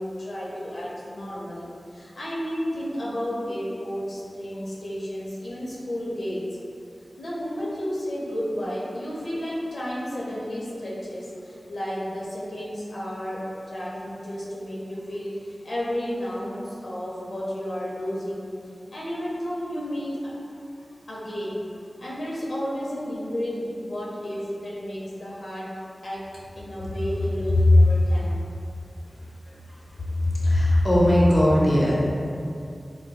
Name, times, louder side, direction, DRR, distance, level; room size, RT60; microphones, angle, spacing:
voice 1, 0.0-6.4 7.2-15.4 15.6-18.5 18.9-20.3 21.1-21.7 22.0-26.2 26.5-28.4, equal, 85° left, -6 dB, 0.7 m, -32 dB
voice 2, 30.4-31.9, left 1 dB, 50° left, -6 dB, 0.8 m, -18 dB
4.0 x 2.2 x 2.3 m, 2.5 s
wide cardioid pair, 55°, 0 cm